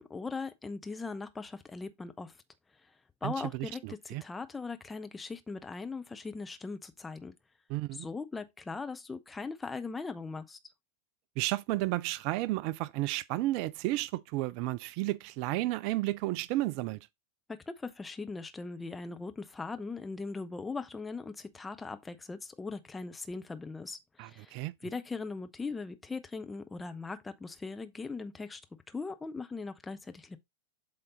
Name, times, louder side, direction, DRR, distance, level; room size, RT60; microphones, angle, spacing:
voice 1, 0.0-2.3 3.2-7.3 7.9-10.6 17.5-24.6 24.8-28.6 28.9-30.4, left 4 dB, 10° left, 0.8 m, -40 dB
voice 2, 3.2-4.2 7.7-8.1 11.4-17.0 24.2-24.7, right 17 dB, 45° right, 0.3 m, -32 dB
7.8 x 3.7 x 3.9 m
figure-of-eight pair, 90°, 0 cm